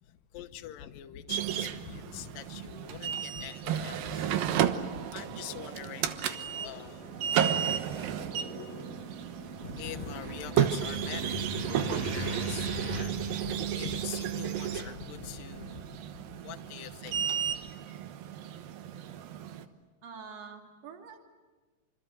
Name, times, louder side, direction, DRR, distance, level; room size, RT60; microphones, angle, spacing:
voice 1, 0.0-7.4 9.6-16.0 16.4-17.4, left 10 dB, 70° left, 2.6 m, -43 dB
sound 1, 1.3-19.7, right 9 dB, 75° right, 2.8 m, -33 dB
sound 2, 5.5-13.0, right 1 dB, 90° right, 5.8 m, -41 dB
voice 2, 20.0-21.2, right 6 dB, 45° right, 3.7 m, -46 dB
27.0 x 27.0 x 7.9 m
omnidirectional pair, 4.4 m